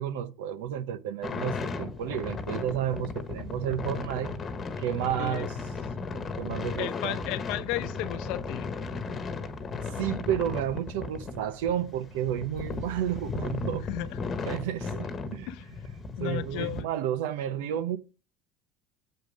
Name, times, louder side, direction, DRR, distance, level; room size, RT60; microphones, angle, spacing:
voice 1, 0.0-4.3 4.8-5.6 6.0-7.2 9.9-13.9 14.5-15.5 16.2-18.0, right 10 dB, 85° right, 0.7 m, -31 dB
sound 1, 1.2-16.8, left 4 dB, 25° left, 1.2 m, -36 dB
voice 2, 5.2-5.5 6.8-8.7 13.9-14.2 15.5-15.7 16.2-16.8, left 14 dB, 70° left, 0.7 m, -34 dB
7.9 x 5.2 x 5.1 m
supercardioid pair, 125°, 0 cm